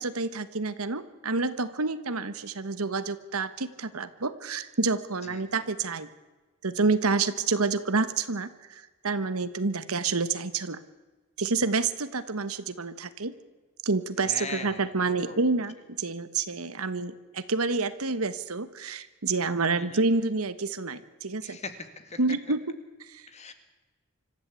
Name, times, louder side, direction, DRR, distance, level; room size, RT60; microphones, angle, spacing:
voice 1, 0.0-6.1 6.6-10.8 11.4-13.3 13.8-21.6 22.2-22.6 23.0-23.3, right 3 dB, 80° right, 13 dB, 1.3 m, -28 dB
voice 2, 14.2-14.9 15.3-15.4 19.8-20.0 21.4-22.2 23.3-23.5, left 4 dB, 30° left, 9 dB, 2.0 m, -40 dB
25.5 x 14.0 x 8.3 m, 1.2 s
head